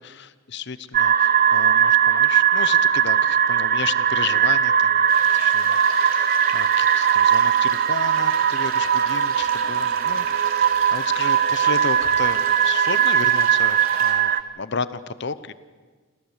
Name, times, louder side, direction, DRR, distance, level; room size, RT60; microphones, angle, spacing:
voice 1, 0.0-5.0 5.3-15.5, left 5 dB, 55° left, 15 dB, 0.8 m, -33 dB
sound 1, 0.9-14.4, right 8 dB, 45° right, 0.6 m, -19 dB
sound 2, 5.1-14.1, right 5 dB, 75° right, 3.4 m, -39 dB
27.5 x 15.0 x 8.2 m, 1.5 s
head